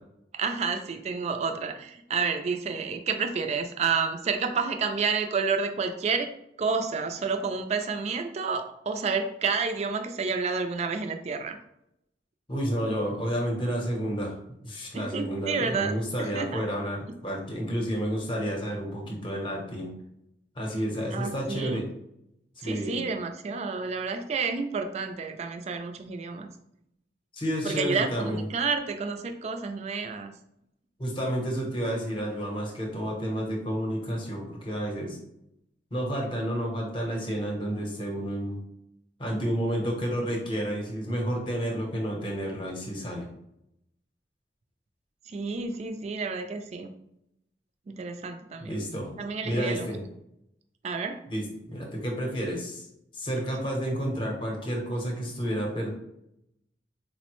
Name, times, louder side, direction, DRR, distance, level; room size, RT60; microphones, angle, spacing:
voice 1, 0.3-6.3 6.6-11.6 14.9-16.6 21.1-21.8 22.6-26.5 27.6-30.3 45.3-46.9 47.9-48.8 49.2-49.9 50.8-51.2, right 5 dB, 35° right, 6 dB, 0.3 m, -30 dB
voice 2, 12.5-14.3 14.6-19.9 20.6-21.8 22.6-23.0 27.3-28.4 31.0-35.2 35.9-38.6 39.2-43.3 48.6-49.1 49.4-50.0 51.3-52.9 53.1-55.9, equal, 30° left, 0 dB, 0.7 m, -30 dB
3.9 x 2.0 x 2.9 m, 0.79 s
head